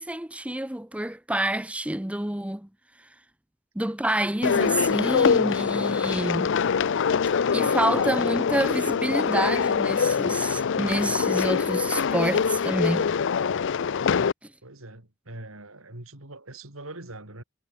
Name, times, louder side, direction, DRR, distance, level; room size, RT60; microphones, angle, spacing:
voice 1, 0.0-2.7 3.7-6.5 7.5-13.1, right 1 dB, 5° right, 0.9 m, -28 dB
sound 1, 4.4-14.3, left 6 dB, 60° left, 0.5 m, -24 dB
voice 2, 14.6-17.4, right 2 dB, 80° right, 4.5 m, -42 dB
head